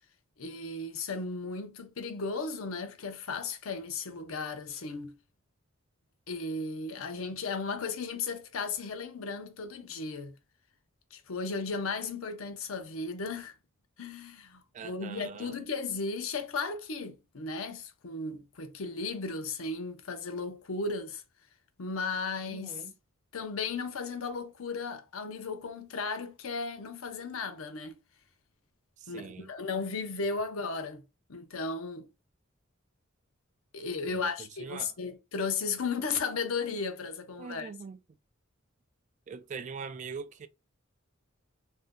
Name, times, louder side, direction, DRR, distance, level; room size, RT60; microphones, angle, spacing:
voice 1, 0.4-5.1 6.3-10.4 11.1-13.6 14.0-21.2 21.8-22.8 23.3-28.0 29.1-32.1 33.7-37.7, left 4 dB, 85° left, 0.6 m, -35 dB
voice 2, 14.7-15.6 22.5-22.9 29.0-29.5 34.1-34.9 37.4-38.0 39.3-40.5, right 5 dB, 35° right, 0.3 m, -42 dB
2.6 x 2.1 x 3.5 m
head